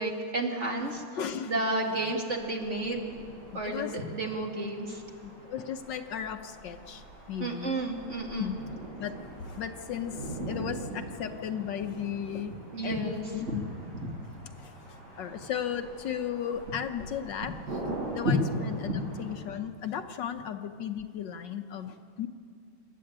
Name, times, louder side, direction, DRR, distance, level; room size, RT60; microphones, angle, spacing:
voice 1, 0.0-1.0 1.5-3.1 3.5-5.0 7.4-8.5 12.7-13.2 13.5-13.6 14.0-14.1 18.2-18.3 18.9-19.0, right 2 dB, 35° right, 0 dB, 2.4 m, -31 dB
voice 2, 0.8-2.2 3.5-4.0 5.2-7.9 8.4-8.6 9.0-9.1 9.5-12.6 12.8-13.6 14.6-17.8 18.1-22.3, left 8 dB, 70° left, 7 dB, 1.4 m, -36 dB
sound 1, 2.2-19.3, right 2 dB, 85° right, 7.9 m, -43 dB
27.5 x 12.0 x 8.8 m, 2.3 s
omnidirectional pair, 2.1 m